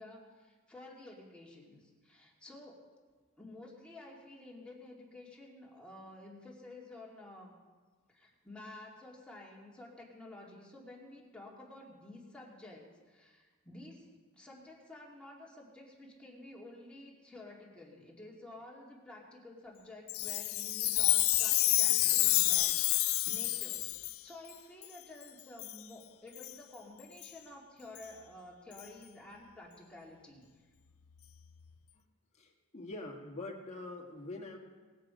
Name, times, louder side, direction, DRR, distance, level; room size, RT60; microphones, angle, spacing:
voice 1, 0.0-2.8 3.4-7.5 8.1-23.9 24.2-30.5, left 2 dB, 5° left, -4 dB, 2.5 m, -51 dB
Chime, 20.1-24.2 24.8-24.9 25.6-25.8 26.4-26.5 27.2-27.3 28.0-28.1 28.8-28.9, left 17 dB, 70° left, 0.5 m, -29 dB
voice 2, 32.4-34.6, left 2 dB, 30° left, 0 dB, 1.7 m, -44 dB
20.0 x 7.7 x 5.1 m, 1.4 s
head